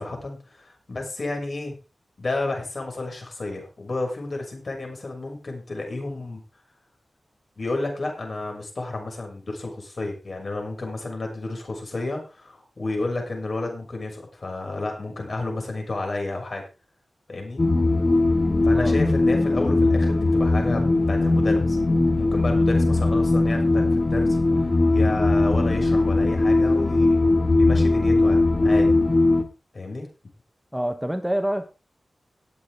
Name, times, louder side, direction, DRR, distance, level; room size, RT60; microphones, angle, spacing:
voice 1, 0.0-1.7 2.2-6.4 7.6-16.6 17.3-17.6 18.6-20.8 21.1-21.8 22.2-27.2 27.5-29.0 29.7-30.1, left 2 dB, 55° left, 2 dB, 6.6 m, -31 dB
sound 1, 17.6-29.4, left 2 dB, 35° left, 1.8 m, -20 dB
voice 2, 30.7-31.7, equal, 5° right, 8 dB, 1.2 m, -26 dB
18.5 x 8.8 x 3.7 m, 0.30 s
wide cardioid pair, 80°, 0 cm